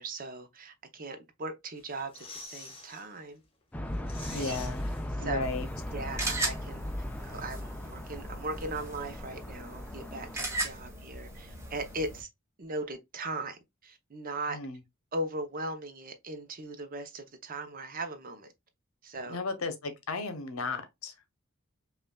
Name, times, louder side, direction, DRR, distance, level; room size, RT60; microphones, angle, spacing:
voice 1, 0.0-3.4 4.2-4.6 5.2-5.5 5.9-6.9 7.2-12.3 12.6-14.6 15.1-18.5 19.0-19.4, right 2 dB, 40° right, 0.6 m, -38 dB
sound 1, 1.8-3.1 3.4-3.5 3.8-5.6 5.9-6.0, left 3 dB, 25° left, 0.9 m, -47 dB
sound 2, 3.7-10.4, left 1 dB, 5° left, 0.3 m, -38 dB
voice 2, 4.3-4.8 5.1-5.7 14.5-14.8 19.2-21.1, left 3 dB, 85° left, 0.8 m, -35 dB
sound 3, 5.4-12.2, right 2 dB, 15° right, 0.8 m, -38 dB
5.2 x 2.4 x 2.2 m
head